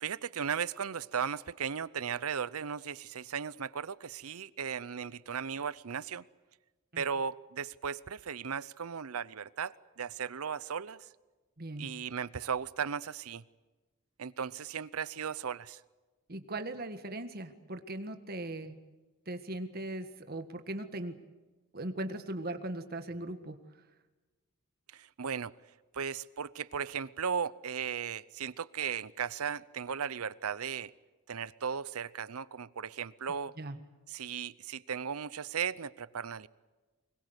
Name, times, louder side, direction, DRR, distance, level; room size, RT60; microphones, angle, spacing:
voice 1, 0.0-6.2 7.0-11.1 11.8-13.4 14.2-15.8 24.9-25.5 25.9-30.9 31.3-33.6 34.1-36.5, right 7 dB, 90° right, 0.7 m, -36 dB
voice 2, 11.6-11.9 16.3-18.8 19.3-21.1 21.7-23.6 33.6-33.8, right 1 dB, 45° right, 1.7 m, -39 dB
24.5 x 22.0 x 8.1 m
head